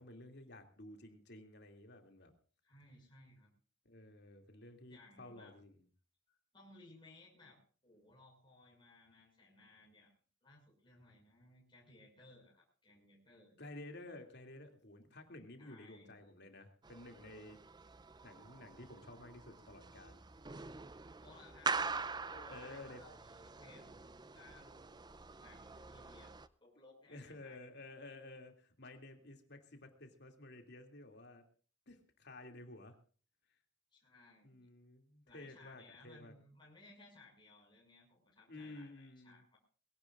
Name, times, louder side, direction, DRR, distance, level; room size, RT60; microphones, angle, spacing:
voice 1, 0.0-2.3 3.8-5.8 13.6-17.6 18.2-20.2 22.5-23.0 27.1-31.4 31.9-33.0 34.4-36.3 38.5-39.4, left 2 dB, 60° left, 4 dB, 2.7 m, -53 dB
voice 2, 2.6-3.5 4.9-5.5 6.3-10.1 10.4-13.6 15.6-16.1 21.2-23.9 24.3-24.9 25.4-26.3 26.6-27.7 33.9-34.7 35.2-39.6, left 2 dB, 25° left, -2 dB, 6.2 m, -61 dB
sound 1, 16.8-26.5, right 4 dB, 20° right, 0.6 m, -44 dB
22.0 x 17.0 x 2.5 m, 0.40 s
head